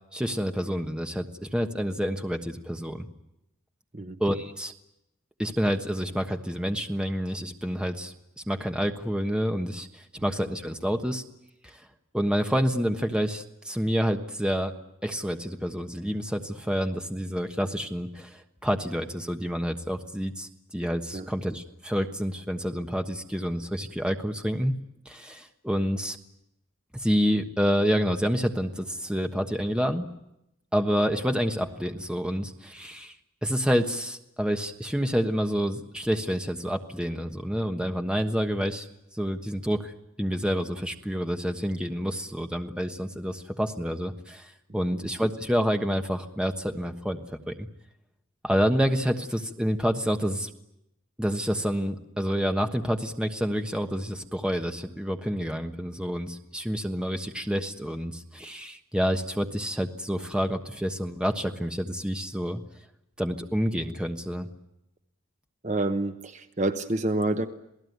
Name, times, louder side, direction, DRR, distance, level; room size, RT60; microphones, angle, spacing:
voice 1, 0.1-3.1 4.2-4.7 5.4-8.1 8.5-11.2 11.6-11.8 12.1-14.7 15.0-24.8 25.0-26.2 26.9-30.1 30.7-33.2 33.4-38.9 39.1-39.9 40.2-47.7 48.4-50.5 51.2-62.6 63.2-64.5, equal, 5° right, 5 dB, 1.3 m, -28 dB
voice 2, 65.6-67.5, right 2 dB, 35° right, 8 dB, 1.0 m, -27 dB
27.5 x 18.0 x 9.5 m, 0.86 s
head